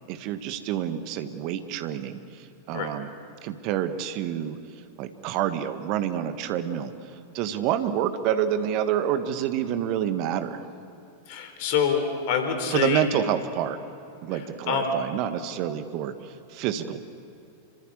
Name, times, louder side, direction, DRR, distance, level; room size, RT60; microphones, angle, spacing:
voice 1, 0.1-3.1 3.4-4.6 5.0-6.9 7.3-10.7 12.7-13.8 14.2-17.0, right 10 dB, 45° right, 9 dB, 1.7 m, -28 dB
voice 2, 11.3-13.0 14.3-15.0, left 6 dB, 50° left, 6 dB, 4.2 m, -26 dB
27.5 x 25.5 x 7.0 m, 2.7 s
figure-of-eight pair, 90°, 0 cm